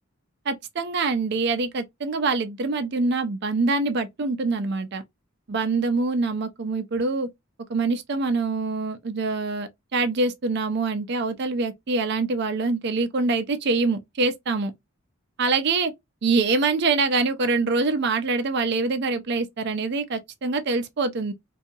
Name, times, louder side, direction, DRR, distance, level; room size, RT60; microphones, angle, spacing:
voice 1, 0.5-5.0 5.5-7.3 7.7-14.7 15.4-15.9 16.2-21.3, right 3 dB, 50° right, 0.5 m, -25 dB
2.8 x 2.3 x 2.6 m
head